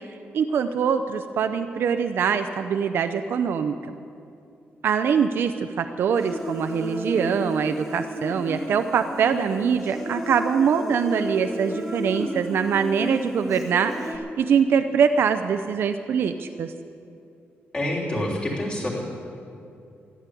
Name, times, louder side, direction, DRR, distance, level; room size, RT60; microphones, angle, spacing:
voice 1, 0.3-3.7 4.8-16.7, right 7 dB, 60° right, 8 dB, 0.5 m, -23 dB
Human voice, 6.2-14.2, equal, ahead, 1.6 m, -32 dB
voice 2, 17.7-18.9, left 1 dB, 20° left, -3 dB, 3.2 m, -27 dB
14.0 x 11.5 x 8.3 m, 2.5 s
wide cardioid pair, 175°, 4 cm